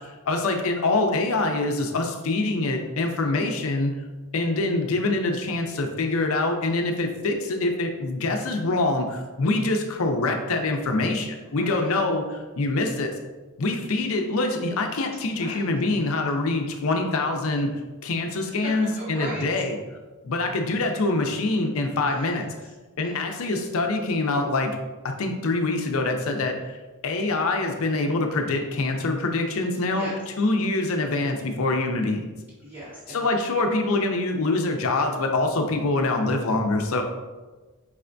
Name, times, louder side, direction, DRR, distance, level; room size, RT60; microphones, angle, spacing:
voice 1, 0.3-3.9 4.3-13.1 13.6-17.7 18.0-19.8 20.2-22.5 23.0-24.8 25.2-26.8 27.0-30.1 30.4-32.3 33.1-37.0, left 2 dB, 65° left, 4 dB, 0.5 m, -25 dB
voice 2, 11.5-11.9 15.3-15.7 18.5-19.5 21.9-23.2 29.9-30.2 32.6-33.3, right 1 dB, 30° right, -9 dB, 0.8 m, -39 dB
4.8 x 3.3 x 2.6 m, 1.3 s
head